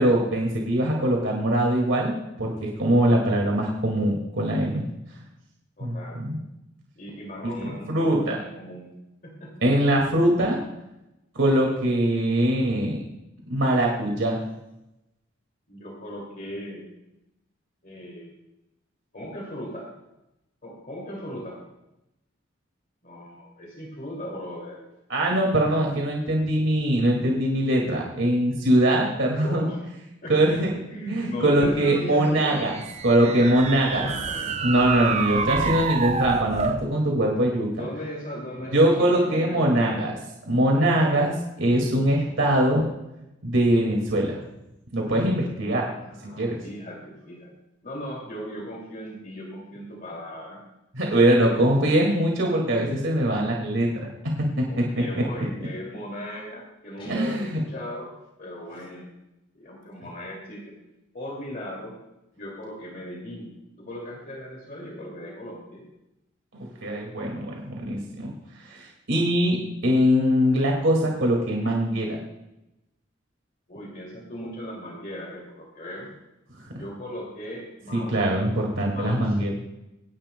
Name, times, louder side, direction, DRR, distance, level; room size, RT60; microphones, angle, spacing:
voice 1, 0.0-4.8 5.8-6.4 7.4-8.4 9.6-10.6 11.3-13.0 13.5-14.4 25.1-29.7 30.3-30.7 31.1-32.7 33.0-34.1 34.6-37.7 38.7-40.1 40.5-41.3 41.6-42.8 43.4-44.4 44.9-45.9 46.2-46.6 50.9-55.2 57.1-57.6 66.5-68.3 68.6-72.2 76.6-76.8 77.9-79.5, right 1 dB, 75° right, 0 dB, 2.2 m, -22 dB
voice 2, 5.8-6.2 7.0-8.9 9.2-9.5 15.7-16.9 17.8-18.3 19.1-19.9 20.6-21.6 23.0-24.8 29.4-29.8 30.2-30.6 30.9-32.8 33.2-34.6 37.8-40.1 40.8-41.3 45.7-47.5 47.8-50.6 51.4-51.5 54.6-58.1 58.4-59.1 59.5-60.7 61.1-62.0 62.3-65.8 73.7-76.1 76.7-78.3 78.8-79.4, equal, 45° left, -2 dB, 2.5 m, -38 dB
sound 1, 32.5-36.9, right 5 dB, 35° right, 0.6 m, -28 dB
Guitar, 57.0-57.8, left 1 dB, 25° left, 2.2 m, -44 dB
25.0 x 10.5 x 2.2 m, 0.92 s
head